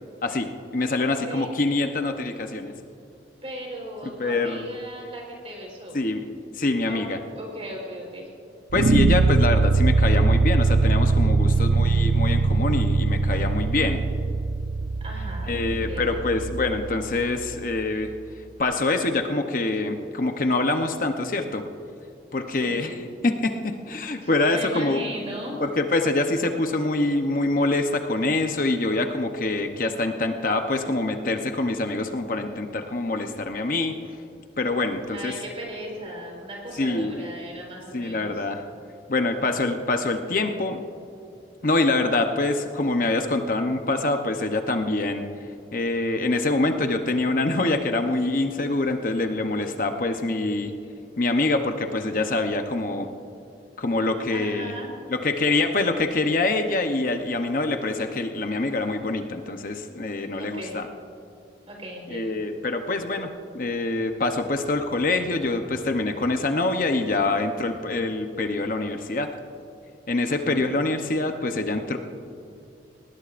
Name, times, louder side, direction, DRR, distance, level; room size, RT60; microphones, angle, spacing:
voice 1, 0.2-2.7 4.2-4.7 5.9-6.2 6.5-7.2 8.7-14.0 15.5-18.1 18.6-21.6 22.3-22.9 23.2-25.0 25.6-34.0 34.6-35.3 36.8-37.2 37.9-38.6 39.1-40.8 41.6-45.3 45.7-50.7 51.2-53.1 53.8-54.7 55.1-60.9 62.1-69.3 70.1-72.0, left 2 dB, 50° left, 5 dB, 0.8 m, -25 dB
voice 2, 0.9-1.5 3.4-6.0 6.9-7.0 7.3-8.3 15.0-16.2 22.5-23.1 24.2-25.6 35.1-38.4 54.3-54.9 60.1-60.8 61.7-62.3 70.2-70.8, right 1 dB, 35° right, -1 dB, 4.0 m, -38 dB
sound 1, 8.7-17.8, right 3 dB, 80° right, 0.5 m, -22 dB
20.0 x 18.5 x 2.5 m, 2.7 s
head